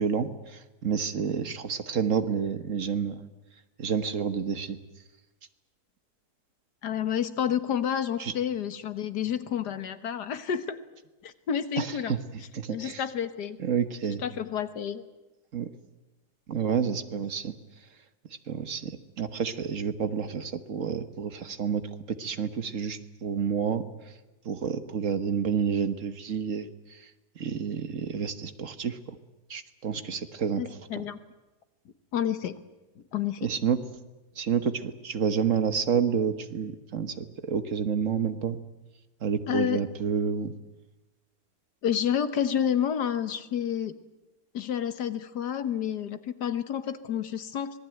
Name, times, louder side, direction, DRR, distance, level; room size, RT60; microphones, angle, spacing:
voice 1, 0.0-3.2 3.8-4.8 8.2-8.3 11.8-12.2 12.5-13.1 13.6-14.2 15.5-15.7 16.5-17.9 18.5-21.8 22.1-24.2 24.4-29.2 29.5-31.0 33.4-33.8 34.3-38.6 39.2-40.5, right 7 dB, 55° right, 10 dB, 1.6 m, -29 dB
voice 2, 6.8-10.8 11.2-12.2 12.7-13.6 14.2-15.0 30.6-31.2 32.1-32.6 33.1-33.4 39.5-39.8 41.8-43.9 44.5-47.8, left 9 dB, 90° left, 11 dB, 1.8 m, -29 dB
25.5 x 19.0 x 9.1 m, 1.1 s
omnidirectional pair, 1.7 m